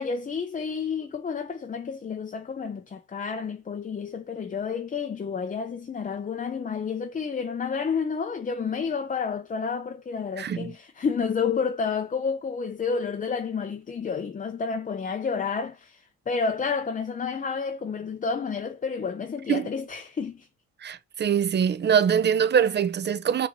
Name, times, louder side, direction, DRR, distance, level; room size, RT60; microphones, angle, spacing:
voice 1, 0.0-20.5, left 5 dB, 25° left, 0.5 m, -30 dB
voice 2, 10.4-10.7 19.5-19.7 20.8-23.5, right 8 dB, 35° right, 0.5 m, -23 dB
5.9 x 2.9 x 2.7 m
cardioid pair, 90°, 30 cm